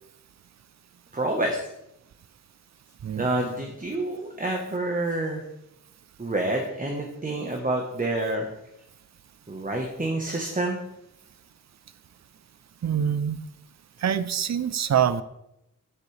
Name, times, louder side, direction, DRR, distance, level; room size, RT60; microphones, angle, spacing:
voice 1, 1.1-1.6 3.2-5.4 6.2-8.5 9.5-10.8, right 2 dB, 25° right, 1 dB, 1.2 m, -28 dB
voice 2, 12.8-13.4 14.0-15.2, right 8 dB, 55° right, 14 dB, 0.5 m, -25 dB
9.9 x 8.5 x 3.3 m, 0.85 s
wide cardioid pair, 105°, 32 cm